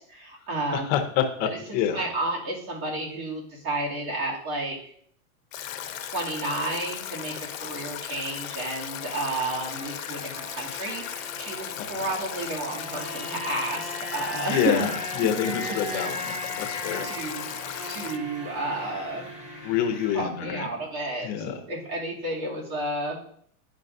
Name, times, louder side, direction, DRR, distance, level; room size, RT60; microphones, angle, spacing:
voice 1, 0.0-0.9 1.7-4.8 6.0-7.3 7.6-14.9 15.4-15.5 15.9-16.1 16.7-17.5 17.9-19.3 20.1-23.2, right 2 dB, 75° right, -2 dB, 2.6 m, -31 dB
voice 2, 0.7-2.1 11.8-12.1 14.3-17.1 19.6-20.7 21.2-21.6, left 9 dB, 25° left, 5 dB, 0.5 m, -27 dB
Stream / Drip / Trickle dribble, 5.5-18.2, left 14 dB, 65° left, 0.6 m, -37 dB
sound 1, 5.5-20.2, equal, 15° right, 0.7 m, -39 dB
11.0 x 5.0 x 2.6 m, 0.62 s
supercardioid pair, 165°, 43 cm